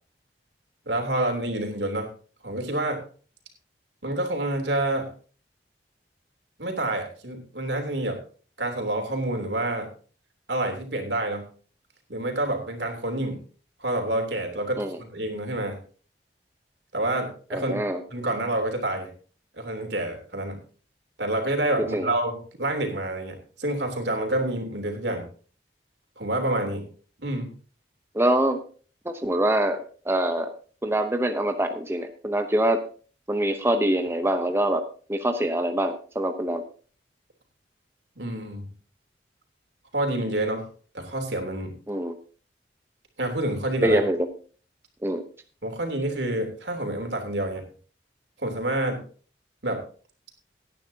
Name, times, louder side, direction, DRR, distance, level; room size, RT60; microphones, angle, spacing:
voice 1, 0.9-2.1 2.4-3.0 4.0-5.1 6.6-8.2 8.6-9.9 10.5-11.4 12.1-13.4 13.8-15.8 16.9-17.8 18.1-19.1 19.6-20.6 21.2-22.3 22.6-25.2 26.2-26.8 27.2-27.5 38.2-38.7 39.9-40.7 40.9-41.7 43.2-44.0 45.6-47.6 48.4-49.0 49.6-49.8, right 1 dB, 80° right, 4 dB, 3.2 m, -28 dB
voice 2, 17.5-18.0 21.9-22.1 28.1-28.6 29.0-30.5 30.8-32.8 33.3-34.8 35.1-36.6 41.9-42.1 43.8-44.2 45.0-45.2, right 1 dB, 15° right, 6 dB, 0.8 m, -24 dB
17.5 x 10.0 x 2.8 m, 0.40 s
head